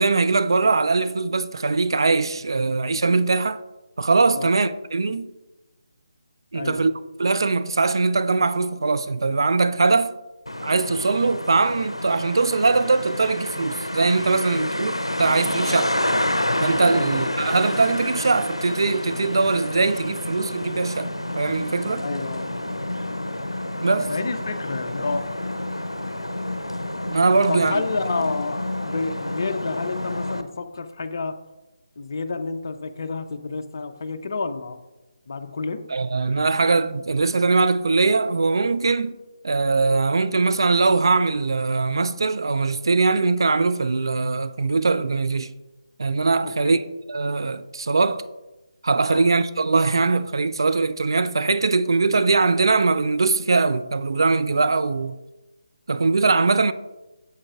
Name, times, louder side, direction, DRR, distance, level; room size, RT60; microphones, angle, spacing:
voice 1, 0.0-3.6 4.0-5.3 6.5-6.9 7.2-10.1 10.6-14.9 15.2-16.0 16.6-22.1 23.8-24.1 27.1-27.8 35.9-39.2 39.4-45.5 46.0-46.8 47.1-48.2 48.8-55.2 55.9-56.7, right 3 dB, 55° right, 0.3 m, -21 dB
Traffic noise roadway noise, 10.5-30.4, left 1 dB, 85° left, 0.6 m, -29 dB
voice 2, 22.0-22.5 24.1-25.3 27.5-31.4 32.0-34.8 35.3-35.8 46.4-46.8 49.1-49.2, left 3 dB, 45° left, 0.5 m, -29 dB
8.5 x 7.6 x 2.4 m
figure-of-eight pair, 150°, 3 cm